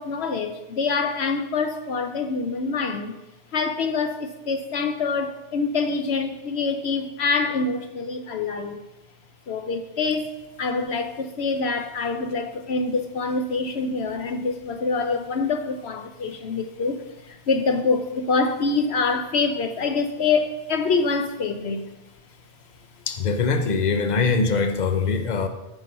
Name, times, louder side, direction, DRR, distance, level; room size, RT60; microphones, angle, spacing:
voice 1, 0.0-3.2 3.5-8.8 9.5-21.9, left 4 dB, 70° left, 1.0 m, -25 dB
voice 2, 23.1-25.5, left 4 dB, 40° left, 1.0 m, -22 dB
14.0 x 6.1 x 5.4 m
omnidirectional pair, 1.1 m